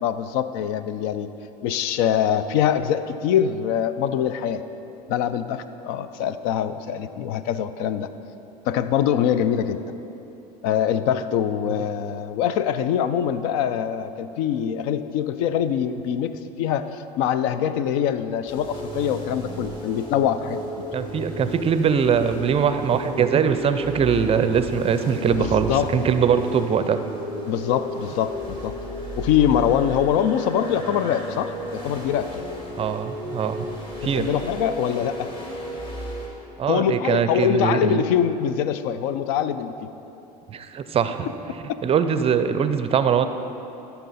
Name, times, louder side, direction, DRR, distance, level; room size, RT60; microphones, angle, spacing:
voice 1, 0.0-1.3 1.6-4.6 5.1-8.1 8.7-9.8 10.6-20.6 25.3-26.0 27.5-28.7 29.2-32.4 34.0-35.3 36.7-39.9, left 9 dB, 60° left, 12 dB, 0.5 m, -24 dB
sound 1, 18.5-36.3, equal, 25° left, 2.2 m, -34 dB
voice 2, 20.9-27.0 32.8-33.7 34.0-34.3 36.6-38.0 40.5-41.3 41.8-43.3, right 7 dB, 30° right, 10 dB, 0.5 m, -22 dB
12.5 x 5.8 x 4.1 m, 3.0 s
hypercardioid pair, 85°, 21 cm